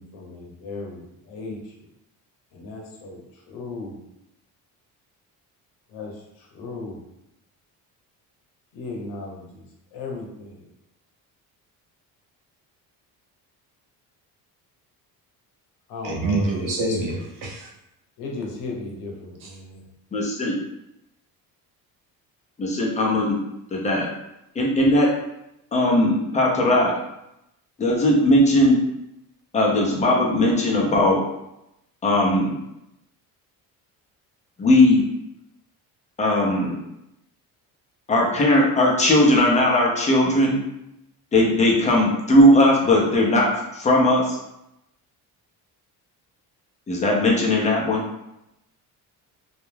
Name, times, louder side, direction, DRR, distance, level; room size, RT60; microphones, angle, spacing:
voice 1, 0.0-1.6 2.5-3.2 3.5-4.0 5.9-6.1 6.5-7.0 8.7-9.6 9.9-10.6 15.9-16.5 16.9-17.0 18.2-19.8, left 3 dB, 80° left, -1 dB, 0.8 m, -35 dB
voice 2, 16.0-17.7 19.4-19.5, right 2 dB, 55° right, -1 dB, 0.7 m, -26 dB
voice 3, 20.1-20.5 22.6-23.4 23.7-24.1 24.6-25.1 25.7-27.0 27.8-28.8 29.5-31.2 32.0-32.6 34.6-35.0 36.2-36.8 38.1-40.6 41.3-44.4 46.9-48.0, left 1 dB, 20° left, -2 dB, 0.5 m, -18 dB
2.3 x 2.0 x 3.1 m, 0.85 s
cardioid pair, 145°, 36 cm